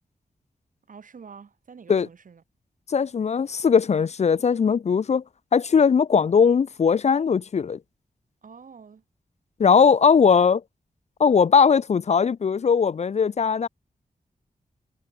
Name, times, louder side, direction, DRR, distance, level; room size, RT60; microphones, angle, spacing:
voice 1, 0.9-2.4 8.4-9.0, right 6 dB, 65° right, 1.7 m, -46 dB
voice 2, 2.9-5.2 5.5-7.8 9.6-10.6 11.2-13.7, left 6 dB, 50° left, 0.4 m, -19 dB
wide cardioid pair, 120°, 15 cm